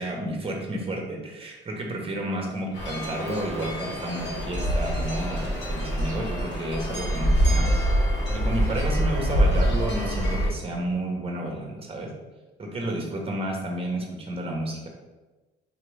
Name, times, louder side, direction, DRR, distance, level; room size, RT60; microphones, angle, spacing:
voice 1, 0.0-7.7 8.3-12.1 12.6-14.9, right 1 dB, 30° right, 1 dB, 1.0 m, -31 dB
sound 1, 2.7-10.5, equal, 60° left, 1.2 m, -25 dB
4.3 x 2.9 x 3.4 m, 1.2 s
cardioid pair, 90°, 20 cm